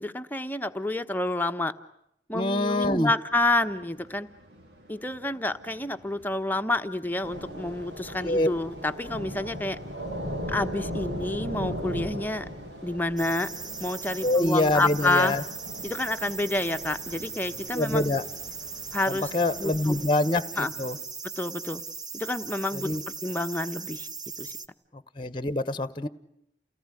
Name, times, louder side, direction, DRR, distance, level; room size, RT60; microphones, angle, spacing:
voice 1, 0.0-1.7 2.3-4.3 4.9-9.8 10.5-12.4 12.8-13.5 13.8-15.3 15.8-18.2 18.9-19.3 19.6-19.9 20.6-20.7 21.4-21.8 22.1-22.9 23.2-24.1 24.4-24.5, left 2 dB, 10° left, 7 dB, 1.1 m, -28 dB
voice 2, 2.3-3.1 8.2-8.5 14.2-15.4 17.7-18.2 19.1-21.0 22.7-23.0 24.9-26.1, left 2 dB, 25° left, 14 dB, 1.1 m, -25 dB
sound 1, 3.3-21.1, right 1 dB, 65° right, 3.4 m, -53 dB
Thunder / Rain, 7.2-20.0, equal, 85° right, 7.4 m, -38 dB
sound 2, 13.2-24.7, right 5 dB, 20° right, 1.0 m, -39 dB
29.5 x 18.5 x 9.9 m, 0.78 s
head